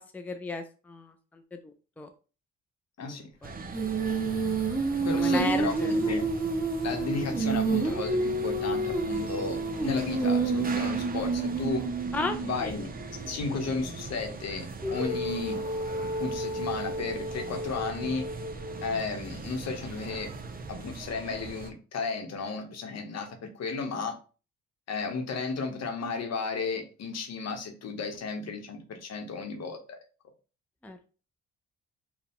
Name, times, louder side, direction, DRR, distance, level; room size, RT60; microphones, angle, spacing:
voice 1, 0.0-2.1 3.0-3.6 4.0-4.1 5.1-5.9 12.1-12.8 30.8-31.0, left 3 dB, 5° left, 6 dB, 0.5 m, -35 dB
voice 2, 3.0-3.3 5.0-6.3 6.8-11.9 12.4-12.9 13.3-15.6 16.2-18.3 18.8-20.3 20.7-24.2 24.9-30.0, left 4 dB, 60° left, 6 dB, 1.0 m, -34 dB
sound 1, 3.4-21.7, right 3 dB, 30° right, 0.7 m, -41 dB
Female singing, 3.7-12.6 14.8-19.0, right 3 dB, 10° right, 1.7 m, -29 dB
sound 2, 6.9-14.1, right 1 dB, 55° right, 1.2 m, -46 dB
4.5 x 2.3 x 3.6 m, 0.35 s
cardioid pair, 90°, 30 cm